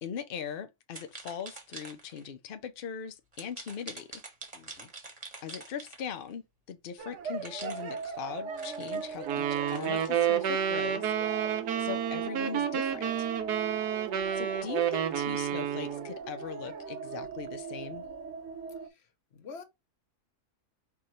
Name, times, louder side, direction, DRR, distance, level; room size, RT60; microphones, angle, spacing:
voice 1, 0.0-4.2 5.4-6.4 6.7-11.1 11.8-13.3 14.3-18.0, left 7 dB, 75° left, 0.5 m, -40 dB
sound 1, 0.9-2.3 3.3-6.3 7.4-10.1, right 3 dB, 25° right, 1.0 m, -46 dB
voice 2, 4.5-4.9 19.3-19.6, left 5 dB, 50° left, 0.9 m, -46 dB
sound 2, 7.0-18.9, right 5 dB, 60° right, 0.9 m, -40 dB
sound 3, 9.2-16.1, right 9 dB, 85° right, 1.3 m, -30 dB
4.7 x 2.6 x 4.3 m
omnidirectional pair, 1.7 m